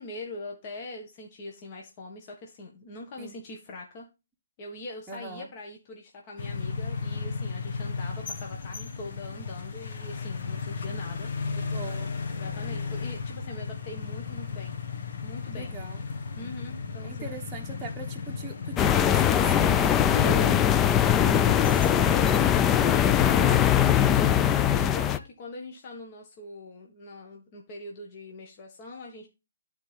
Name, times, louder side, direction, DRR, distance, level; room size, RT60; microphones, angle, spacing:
voice 1, 0.0-4.1 4.6-11.3 12.3-14.7 15.2-15.7 16.3-17.3 20.1-20.6 24.7-29.3, left 2 dB, 35° left, 1 dB, 1.6 m, -41 dB
voice 2, 5.1-5.5 11.6-12.1 15.6-16.0 17.0-20.6 21.0-24.0, right 4 dB, 10° right, -4 dB, 1.1 m, -41 dB
sound 1, 6.4-24.9, left 5 dB, 60° left, 1.6 m, -35 dB
sound 2, 18.8-25.2, left 10 dB, 15° left, 0.4 m, -21 dB
12.5 x 4.4 x 3.5 m, 0.27 s
hypercardioid pair, 150°, 0 cm